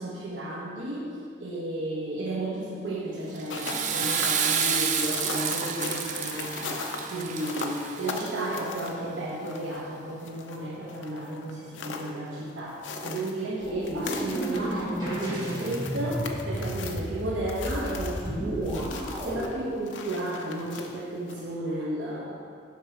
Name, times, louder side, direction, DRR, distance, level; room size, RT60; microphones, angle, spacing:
voice 1, 0.0-22.3, right 1 dB, 80° right, -4 dB, 1.1 m, -33 dB
sound 1, 3.3-21.6, left 4 dB, 75° left, 0.6 m, -40 dB
Water / Toilet flush, 3.4-8.6, right 6 dB, 40° right, 0.4 m, -29 dB
sound 2, 13.6-19.4, equal, 20° right, 1.9 m, -33 dB
7.3 x 5.7 x 4.5 m, 2.2 s
head